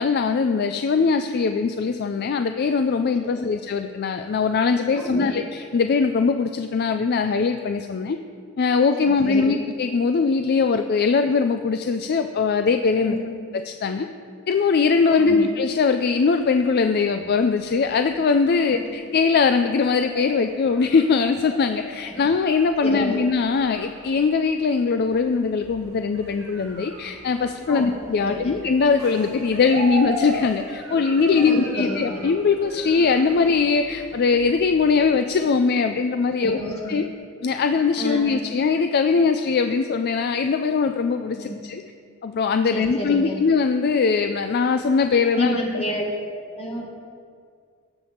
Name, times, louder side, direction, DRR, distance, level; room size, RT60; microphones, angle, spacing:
voice 1, 0.0-8.2 8.6-13.2 13.5-14.1 14.5-36.6 36.9-37.1 37.4-41.8 42.2-45.6, left 5 dB, 50° left, 7 dB, 0.4 m, -21 dB
voice 2, 4.9-5.3 9.0-9.4 13.0-13.3 15.0-15.5 18.6-18.8 22.8-23.2 27.7-27.9 28.2-28.5 31.4-32.2 36.4-36.9 38.0-38.3 41.4-41.6 42.7-43.4 45.3-46.8, equal, 30° left, -2 dB, 2.0 m, -30 dB
sound 1, 16.1-35.2, right 2 dB, 75° right, 1.4 m, -38 dB
18.5 x 7.1 x 3.5 m, 2.1 s
head